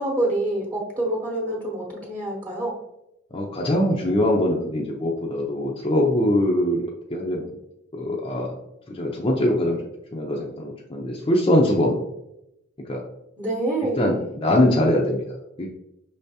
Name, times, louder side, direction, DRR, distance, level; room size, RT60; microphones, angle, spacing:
voice 1, 0.0-2.7 13.4-14.1, right 1 dB, 20° right, -5 dB, 0.9 m, -26 dB
voice 2, 3.3-7.6 7.9-8.5 8.9-9.8 10.1-12.0 12.9-13.0 13.8-15.7, left 1 dB, 25° left, -2 dB, 0.5 m, -22 dB
5.5 x 3.4 x 2.7 m, 0.85 s
head